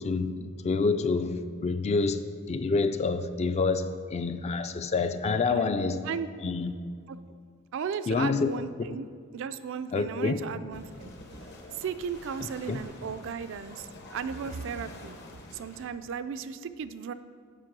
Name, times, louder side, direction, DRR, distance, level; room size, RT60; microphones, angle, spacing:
voice 1, 0.0-6.0 6.4-6.7 8.1-8.5 9.9-10.4 12.7-12.8, left 4 dB, 30° left, 0.3 m, -27 dB
voice 2, 7.7-11.1 11.7-15.2 15.5-17.1, right 6 dB, 60° right, 0.4 m, -36 dB
sound 1, 10.7-15.9, left 2 dB, 55° left, 0.9 m, -47 dB
7.5 x 5.2 x 6.0 m
head